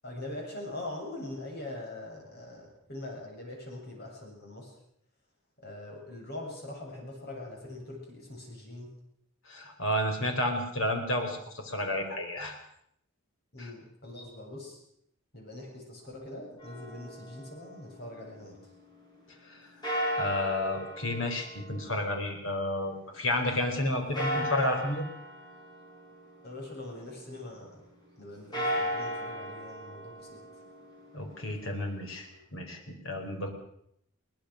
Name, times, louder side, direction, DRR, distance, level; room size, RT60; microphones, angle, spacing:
voice 1, 0.0-4.8 5.6-8.9 13.5-14.8 15.3-18.7 26.4-27.8 28.2-30.6, left 1 dB, 50° left, 0 dB, 7.9 m, -42 dB
voice 2, 9.5-12.6 13.6-13.7 19.5-19.6 20.1-25.0 31.1-33.5, left 1 dB, 70° left, 4 dB, 4.6 m, -31 dB
sound 1, 16.6-18.7 19.8-23.2 24.1-27.1 28.4-32.4, equal, 20° left, 6.1 m, -37 dB
22.0 x 19.5 x 6.6 m, 0.72 s
head